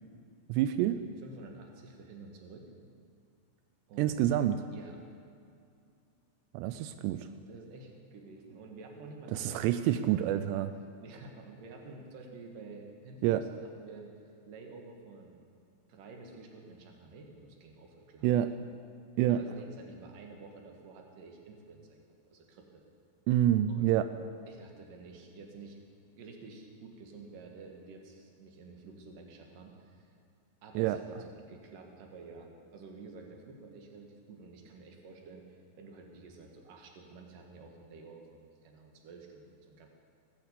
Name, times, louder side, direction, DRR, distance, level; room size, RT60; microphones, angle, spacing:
voice 1, 0.5-1.0 4.0-4.6 6.5-7.3 9.3-10.7 13.2-13.4 18.2-18.5 19.2-19.4 23.3-24.1 30.8-31.0, right 12 dB, 90° right, 10 dB, 2.4 m, -27 dB
voice 2, 1.2-2.7 3.9-4.4 4.7-5.0 7.4-9.8 10.0-10.4 11.0-13.5 13.8-14.1 14.4-15.4 15.9-18.3 19.3-22.0 22.3-22.8 23.7-24.0 24.5-25.8 26.1-30.1 30.6-39.9, right 3 dB, 55° right, 2 dB, 2.7 m, -50 dB
16.5 x 9.6 x 8.2 m, 2.4 s
omnidirectional pair, 5.4 m